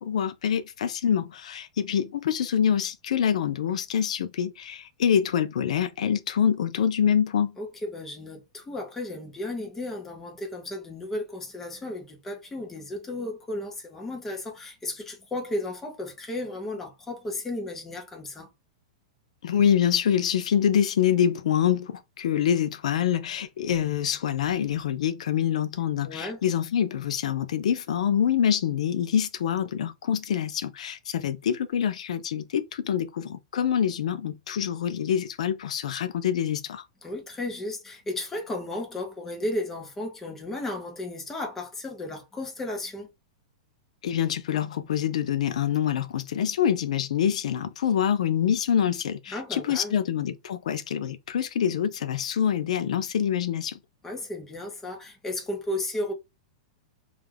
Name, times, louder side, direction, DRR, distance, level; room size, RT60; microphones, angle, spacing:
voice 1, 0.0-7.6 19.4-36.9 44.0-53.8, left 9 dB, 75° left, 0.4 m, -25 dB
voice 2, 7.6-18.5 26.0-26.4 37.0-43.1 49.3-50.0 54.0-56.1, left 1 dB, 10° left, 0.6 m, -34 dB
2.3 x 2.1 x 3.1 m
supercardioid pair, 165°, 4 cm